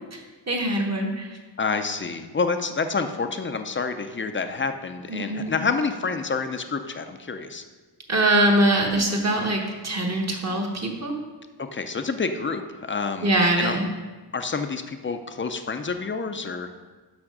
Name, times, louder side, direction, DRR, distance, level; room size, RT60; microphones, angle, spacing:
voice 1, 0.1-1.4 5.1-5.6 8.1-11.1 13.2-13.9, right 1 dB, 35° right, 1 dB, 1.2 m, -23 dB
voice 2, 1.6-7.6 11.6-13.3 13.6-13.8 14.3-16.7, left 4 dB, 30° left, 8 dB, 0.5 m, -28 dB
6.0 x 5.7 x 6.4 m, 1.3 s
wide cardioid pair, 150°, 43 cm